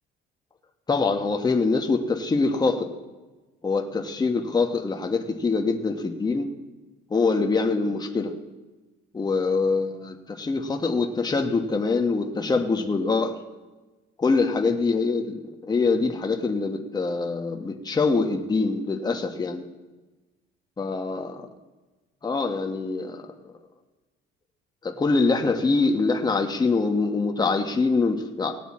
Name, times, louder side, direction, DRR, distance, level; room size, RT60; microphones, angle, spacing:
voice 1, 0.9-2.9 3.6-6.5 7.1-8.3 9.1-13.4 14.2-19.6 20.8-21.4 22.2-23.3 24.8-28.7, left 4 dB, 20° left, 4 dB, 1.1 m, -24 dB
18.5 x 9.1 x 4.2 m, 1.2 s
cardioid pair, 120°, 20 cm